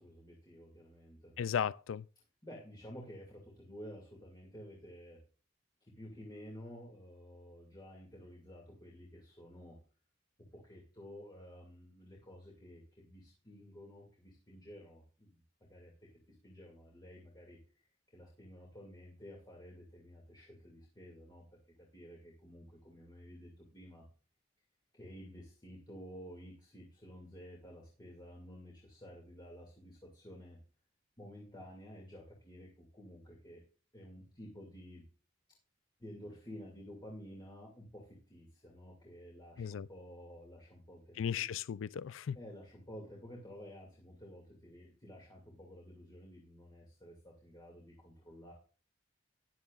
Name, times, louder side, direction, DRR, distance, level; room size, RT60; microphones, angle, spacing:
voice 1, 0.0-1.4 2.2-5.2 5.8-9.8 10.5-24.1 24.9-30.6 31.2-33.6 33.9-35.0 36.0-41.4 42.3-48.5, equal, 20° left, 2.3 m, -52 dB
voice 2, 1.4-2.0 39.6-39.9 41.2-42.4, left 8 dB, 90° left, 0.4 m, -35 dB
13.5 x 10.5 x 2.4 m
head